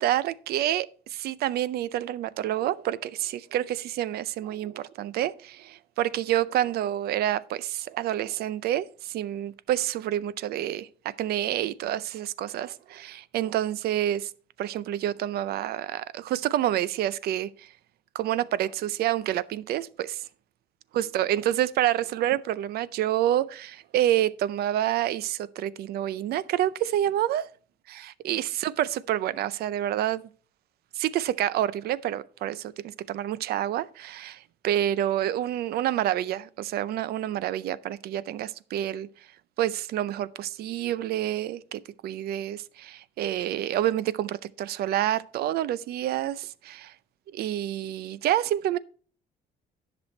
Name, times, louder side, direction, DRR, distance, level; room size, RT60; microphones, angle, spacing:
voice 1, 0.0-14.3 14.6-17.7 18.1-20.2 20.9-27.4 27.9-28.0 28.2-30.3 30.9-39.1 39.6-46.9 47.3-48.8, right 12 dB, 70° right, 0.5 m, -28 dB
10.5 x 6.2 x 4.3 m
cardioid pair, 110°, 17 cm